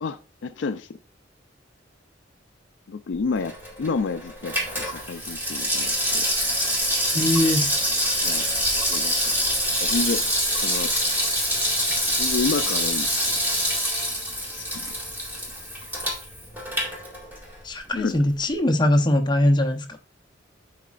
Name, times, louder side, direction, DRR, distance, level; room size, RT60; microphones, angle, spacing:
voice 1, 0.0-0.9 2.9-6.2 8.2-8.5 8.9-9.3 9.8-10.2 10.5-10.9 12.1-13.2 14.5-14.9 17.9-18.2, left 4 dB, 75° left, 0.4 m, -30 dB
Water tap faucet / Sink (filling or washing), 3.3-17.6 17.9-18.0, equal, 10° right, 2.0 m, -25 dB
voice 2, 7.1-7.7 17.6-20.0, left 1 dB, 25° left, 0.8 m, -21 dB
11.0 x 4.2 x 2.4 m
head